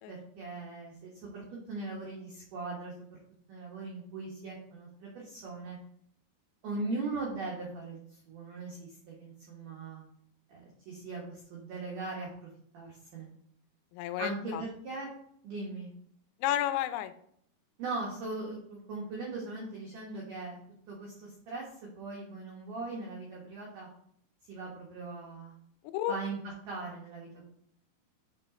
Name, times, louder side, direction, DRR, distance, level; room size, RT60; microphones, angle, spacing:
voice 1, 0.1-3.2 3.5-5.8 6.6-10.0 10.5-13.3 14.2-15.1 15.4-15.9 17.8-20.6 20.9-23.9 24.5-25.5 26.1-26.4 26.7-27.5, right 3 dB, 90° right, -3 dB, 1.8 m, -40 dB
voice 2, 13.9-14.6 16.4-17.1 25.9-26.2, left 13 dB, 90° left, 11 dB, 3.2 m, -31 dB
8.5 x 4.1 x 3.8 m, 0.68 s
omnidirectional pair, 5.8 m